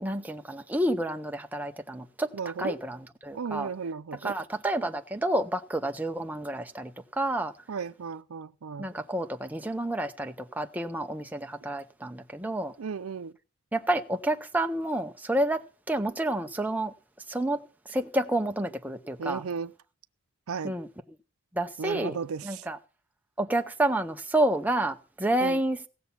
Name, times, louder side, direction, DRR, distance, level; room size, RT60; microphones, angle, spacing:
voice 1, 0.0-2.3 2.6-3.7 4.1-7.5 8.8-12.7 13.7-15.6 15.9-16.9 17.3-17.6 17.9-19.4 20.6-20.9 21.5-22.2 22.4-22.8 23.4-25.8, right 1 dB, 10° right, 0.6 m, -29 dB
voice 2, 2.3-2.8 3.3-4.3 7.7-8.9 12.8-13.3 19.2-19.7 20.5-20.8 21.8-22.7 25.4-25.6, right 6 dB, 80° right, 0.5 m, -34 dB
17.5 x 6.9 x 5.7 m
head